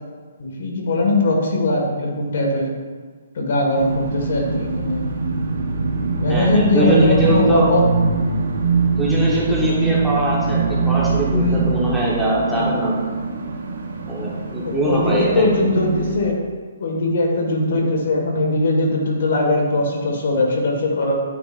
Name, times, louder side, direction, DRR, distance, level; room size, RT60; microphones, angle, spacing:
voice 1, 0.4-2.7 3.3-5.0 6.2-7.8 11.3-11.7 12.6-12.8 14.6-16.4 16.8-21.1, left 2 dB, 60° left, 0 dB, 1.6 m, -20 dB
sound 1, 3.7-16.2, right 4 dB, 70° right, 0.9 m, -23 dB
voice 2, 6.3-7.7 9.0-10.6 10.9-13.0 14.1-15.5, right 1 dB, ahead, -8 dB, 1.2 m, -21 dB
9.0 x 5.5 x 2.5 m, 1.5 s
hypercardioid pair, 165°, 0 cm